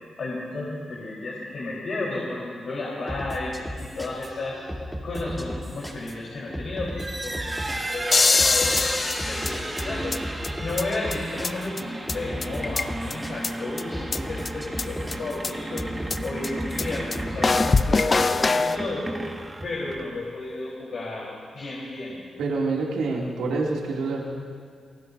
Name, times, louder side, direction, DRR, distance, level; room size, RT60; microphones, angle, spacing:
voice 1, 0.2-4.6 5.0-10.1 10.6-19.1 19.6-22.2, left 2 dB, 65° left, -5 dB, 4.3 m, -33 dB
sound 1, 3.1-17.8, equal, 5° left, 3.5 m, -36 dB
sound 2, 6.8-20.3, right 2 dB, 25° right, 1.9 m, -35 dB
sound 3, 8.1-10.2 10.4-10.5 10.8-10.9 11.1-11.2 11.4-11.5 11.8-11.9 12.1-12.2 12.4-13.1 13.4-13.5 13.8-13.9 14.1-14.2 14.4-14.5 14.8-14.9 15.1-15.2 15.4-15.5 15.8-15.9 16.1-16.2 16.4-16.5 16.8-16.9 17.1-17.2 17.4-18.8, left 3 dB, 45° left, 0.7 m, -22 dB
voice 2, 22.4-24.2, right 3 dB, 80° right, -3 dB, 2.9 m, -26 dB
27.5 x 18.5 x 2.8 m, 2.1 s
supercardioid pair, 45°, 0 cm